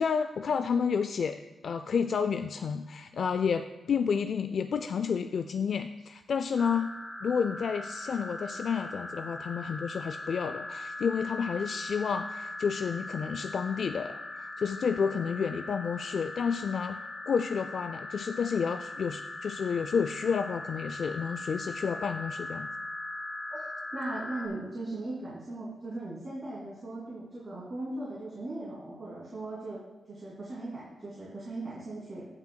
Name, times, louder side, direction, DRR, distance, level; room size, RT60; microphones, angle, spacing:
voice 1, 0.0-6.9 7.2-14.2 14.6-17.0 17.3-22.7, left 6 dB, 65° left, 9 dB, 0.3 m, -30 dB
sound 1, 6.6-24.5, left 2 dB, 5° right, 1.3 m, -40 dB
voice 2, 23.9-29.8 30.1-32.2, right 2 dB, 40° right, -7 dB, 2.6 m, -38 dB
17.0 x 5.9 x 2.2 m, 1.1 s
cardioid pair, 95°, 0 cm